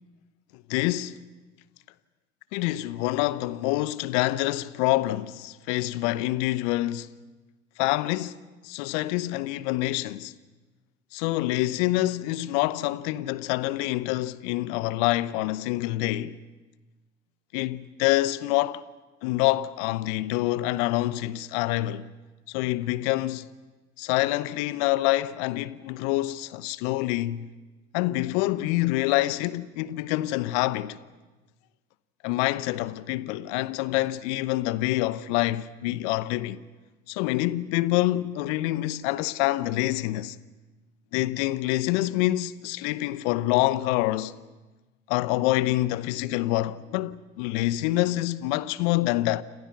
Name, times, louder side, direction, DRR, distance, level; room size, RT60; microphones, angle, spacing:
voice 1, 0.7-1.2 2.5-7.1 7.8-10.3 11.1-16.4 17.5-18.8 19.2-22.1 22.5-23.5 24.0-27.5 27.9-31.0 32.2-36.6 37.1-40.4 41.1-44.3 45.1-49.4, left 17 dB, 70° left, 1.0 m, -26 dB
29.0 x 26.5 x 6.0 m
hypercardioid pair, 60°, 37 cm